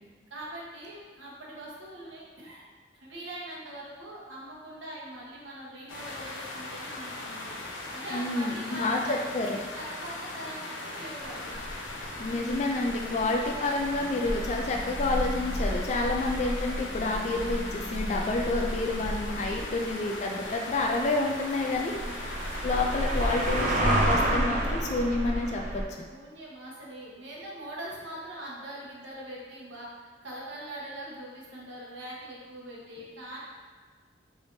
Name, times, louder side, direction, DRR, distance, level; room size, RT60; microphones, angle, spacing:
voice 1, 0.3-2.6 2.9-7.5 7.9-9.1 9.8-11.6 13.2-13.4 19.3-19.7 21.8-22.3 26.1-33.4, right 1 dB, 85° right, -5 dB, 1.1 m, -42 dB
sound 1, 5.9-23.6, left 2 dB, 85° left, 0.7 m, -39 dB
voice 2, 8.1-9.7 12.2-22.3 22.6-25.8, left 2 dB, 35° left, 0 dB, 0.3 m, -29 dB
sound 2, 11.2-25.8, right 1 dB, 40° right, 0.5 m, -31 dB
sound 3, 14.0-19.0, equal, 50° left, 0.8 m, -47 dB
4.8 x 3.4 x 2.7 m, 1.4 s
head